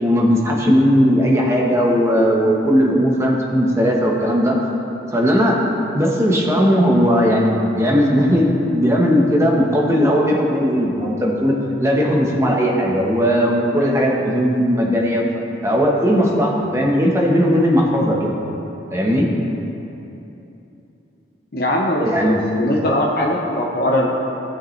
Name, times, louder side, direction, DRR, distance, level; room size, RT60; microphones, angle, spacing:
voice 1, 0.0-4.6 5.1-5.6 5.9-15.2 15.6-18.3 18.9-19.3 22.0-22.4, equal, 15° right, -2 dB, 1.1 m, -17 dB
voice 2, 21.5-24.1, left 1 dB, 55° left, -2 dB, 0.8 m, -20 dB
15.5 x 6.6 x 3.2 m, 3.0 s
head